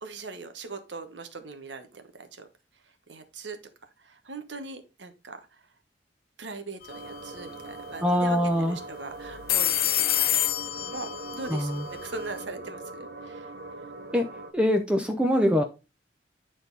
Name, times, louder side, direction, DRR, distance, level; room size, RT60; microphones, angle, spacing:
voice 1, 0.0-2.5 3.1-3.6 4.0-5.4 6.4-8.4 8.7-10.3 10.8-13.5, right 3 dB, 90° right, 7 dB, 1.2 m, -40 dB
sound 1, 6.8-7.1 7.4-7.5 9.2-12.4, left 13 dB, 55° left, 0.5 m, -28 dB
sound 2, 6.9-14.5, right 2 dB, 60° right, 0.8 m, -41 dB
voice 2, 8.0-8.8 11.5-11.9 14.1-14.3 14.5-15.6, equal, 5° right, 4 dB, 0.6 m, -23 dB
9.4 x 4.0 x 3.9 m, 0.28 s
head